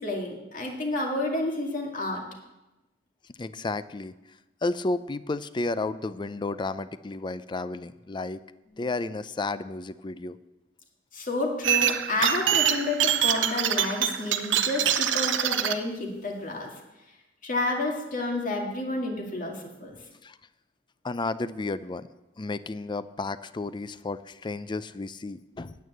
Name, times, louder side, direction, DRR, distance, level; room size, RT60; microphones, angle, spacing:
voice 1, 0.0-2.2 8.7-8.9 11.1-16.7 17.4-19.9, left 2 dB, 45° left, 1 dB, 2.2 m, -30 dB
voice 2, 3.4-4.1 4.6-8.4 8.8-10.4 20.2-20.4 21.0-22.1 22.4-25.8, left 3 dB, 25° left, 15 dB, 0.4 m, -32 dB
sound 1, 11.6-15.7, right 9 dB, 90° right, 0.7 m, -25 dB
9.4 x 8.9 x 7.7 m, 1.0 s
head